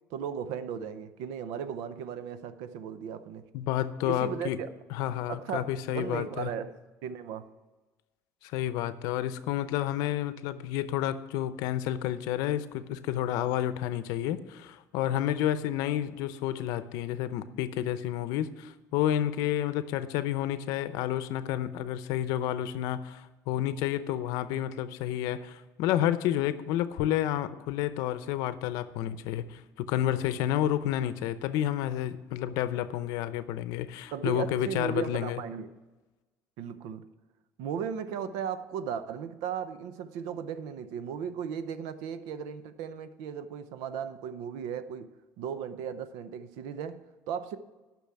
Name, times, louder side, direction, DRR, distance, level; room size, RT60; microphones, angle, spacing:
voice 1, 0.1-3.4 4.0-4.7 5.3-6.8 7.0-7.5 34.1-35.7 36.6-37.1 37.6-45.1 45.4-47.6, right 7 dB, 85° right, 12 dB, 0.7 m, -36 dB
voice 2, 3.5-4.6 4.9-6.5 8.4-35.4, left 12 dB, 75° left, 13 dB, 0.7 m, -30 dB
10.5 x 6.1 x 8.5 m, 1.2 s
cardioid pair, 165°, 6 cm